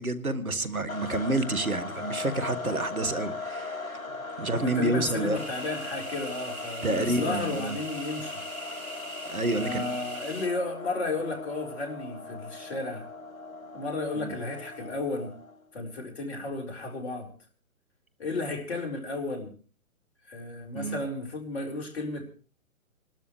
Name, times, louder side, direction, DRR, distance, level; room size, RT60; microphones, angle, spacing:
voice 1, 0.0-4.0 4.4-5.4 6.8-7.7 9.3-9.9 14.2-14.3 20.7-21.0, right 2 dB, 80° right, 1.6 m, -29 dB
sound 1, 0.9-15.6, left 3 dB, 70° left, 1.7 m, -39 dB
voice 2, 4.5-8.4 9.6-13.1 13.7-15.3 15.7-17.3 18.2-19.5 20.3-22.3, left 2 dB, 50° left, 4.3 m, -33 dB
sound 2, 5.3-10.5, right 1 dB, 45° right, 6.0 m, -41 dB
28.0 x 12.5 x 3.2 m
figure-of-eight pair, 130°, 42 cm